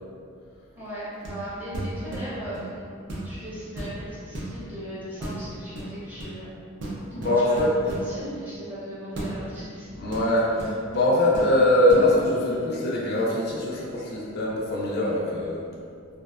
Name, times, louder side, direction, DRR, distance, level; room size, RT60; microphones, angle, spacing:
voice 1, 0.8-6.6 7.3-9.9, equal, 10° right, -11 dB, 0.6 m, -38 dB
sound 1, 1.2-1.5 1.7-2.7 3.1-3.4 3.7-4.5 5.2-5.4 5.8-6.4 6.8-8.1 9.2-9.3 10.1-11.1 11.3-11.5 11.9-12.1, right 1 dB, 55° right, 0.5 m, -34 dB
voice 2, 7.1-7.8 9.9-15.6, left 1 dB, 50° left, -5 dB, 0.3 m, -22 dB
2.5 x 2.1 x 2.3 m, 2.3 s
head